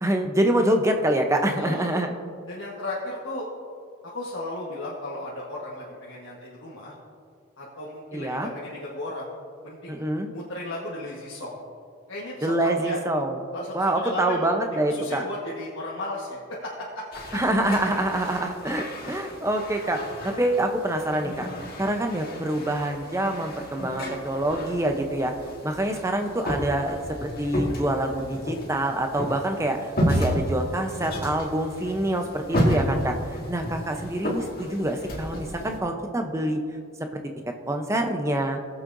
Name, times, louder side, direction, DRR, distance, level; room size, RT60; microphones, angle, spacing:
voice 1, 0.0-2.1 8.1-8.5 9.9-10.3 12.4-13.4 13.7-15.2 17.3-21.5 21.8-25.3 25.6-33.2 33.5-36.6 37.7-38.6, right 1 dB, 15° right, 4 dB, 0.7 m, -26 dB
voice 2, 1.5-2.1 2.5-3.5 4.0-6.9 7.6-9.3 9.6-10.1 10.3-11.6 12.1-13.0 13.5-14.5 14.9-17.4, left 1 dB, 65° left, -6 dB, 1.4 m, -35 dB
sound 1, 17.1-35.8, equal, 45° left, 1.9 m, -32 dB
18.5 x 7.5 x 2.6 m, 2.2 s
head